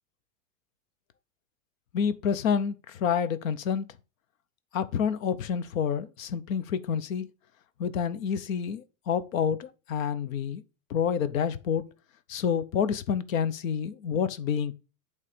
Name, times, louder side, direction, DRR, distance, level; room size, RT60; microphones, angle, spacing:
voice 1, 1.9-3.9 4.7-7.3 7.8-10.6 10.9-11.8 12.3-14.7, left 7 dB, 85° left, 0.8 m, -28 dB
8.5 x 3.3 x 4.9 m
supercardioid pair, 160°, 39 cm